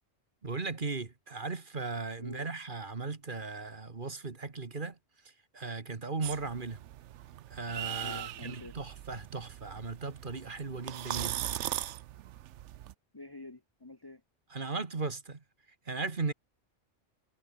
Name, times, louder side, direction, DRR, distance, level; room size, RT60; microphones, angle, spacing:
voice 1, 0.4-5.0 5.2-6.8 7.5-11.5 14.5-15.4 15.9-16.3, right 4 dB, 45° right, 1.8 m, -37 dB
sound 1, 6.2-12.9, right 13 dB, 75° right, 0.9 m, -40 dB
voice 2, 8.0-8.8 13.1-14.2, left 2 dB, 20° left, 0.9 m, -47 dB
omnidirectional pair, 1.2 m